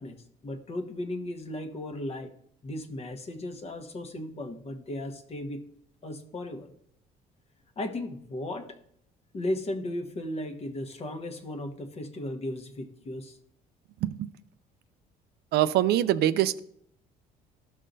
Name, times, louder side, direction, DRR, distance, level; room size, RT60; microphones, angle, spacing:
voice 1, 0.0-2.3 2.6-5.6 6.0-6.7 7.8-8.7 9.3-13.4, left 1 dB, 35° left, 7 dB, 1.1 m, -36 dB
voice 2, 15.5-16.6, right 12 dB, 70° right, 14 dB, 0.4 m, -23 dB
13.5 x 5.5 x 2.7 m, 0.70 s
cardioid pair, 110°, 17 cm